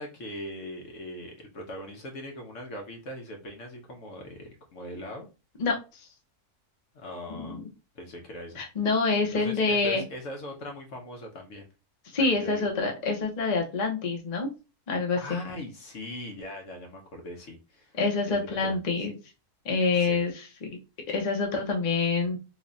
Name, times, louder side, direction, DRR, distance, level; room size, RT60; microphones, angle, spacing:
voice 1, 0.0-5.3 6.9-7.6 7.9-8.6 9.3-11.7 12.1-12.7 15.2-17.9 18.3-18.8 20.0-20.2, left 1 dB, 60° left, 2 dB, 1.1 m, -40 dB
voice 2, 7.3-7.6 8.6-10.0 12.1-14.5 14.9-15.4 18.0-19.1 19.6-20.8 21.1-22.4, left 3 dB, 35° left, 1 dB, 0.7 m, -26 dB
3.2 x 2.3 x 3.8 m, 0.29 s
omnidirectional pair, 1.6 m